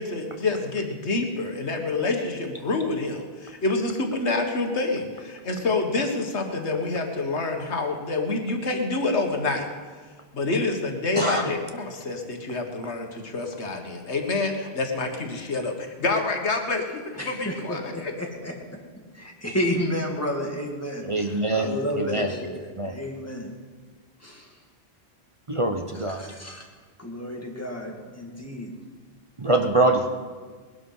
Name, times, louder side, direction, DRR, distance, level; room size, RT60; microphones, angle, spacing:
voice 1, 0.0-9.7 10.3-18.1, left 3 dB, 85° left, 4 dB, 1.9 m, -27 dB
voice 2, 17.2-18.5 19.1-23.5 24.2-24.5 26.1-26.7 27.0-28.7, equal, 15° left, 0 dB, 2.3 m, -31 dB
voice 3, 21.0-22.3 22.8-22.9 25.5-26.2 29.4-30.0, right 2 dB, 30° right, 4 dB, 1.0 m, -24 dB
20.0 x 12.0 x 5.6 m, 1.5 s
omnidirectional pair, 1.1 m